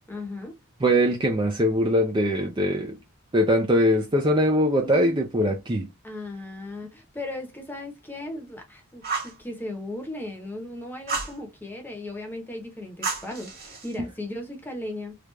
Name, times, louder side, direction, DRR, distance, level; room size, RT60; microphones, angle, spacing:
voice 1, 0.1-0.6 4.8-5.2 6.0-15.2, left 1 dB, 10° left, 0.9 m, -37 dB
voice 2, 0.8-3.0 3.3-5.9, equal, 20° right, 0.5 m, -22 dB
Fire, 9.0-9.4 11.1-11.4 13.0-13.9, right 4 dB, 45° right, 1.6 m, -31 dB
3.3 x 2.4 x 3.2 m
head